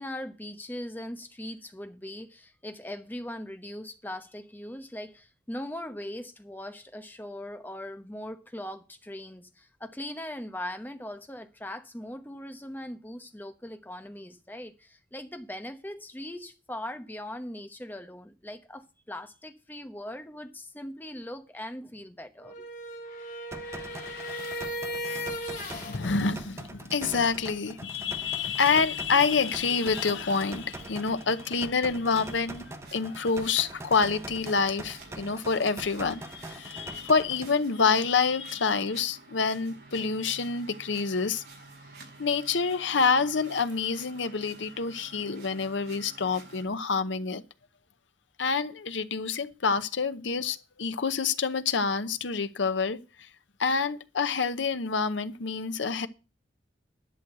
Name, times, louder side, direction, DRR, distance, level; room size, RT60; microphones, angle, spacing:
voice 1, 0.0-22.7, left 1 dB, 10° left, 0.9 m, -40 dB
sound 1, 22.4-26.0, equal, 45° left, 3.4 m, -36 dB
sound 2, 23.5-37.5, right 2 dB, 15° right, 0.9 m, -43 dB
voice 2, 25.7-32.6 32.9-41.4 42.2-47.4 48.4-53.3 53.6-56.1, left 5 dB, 85° left, 0.8 m, -27 dB
sound 3, 28.2-46.6, right 2 dB, 55° right, 5.9 m, -51 dB
11.0 x 6.3 x 7.9 m
head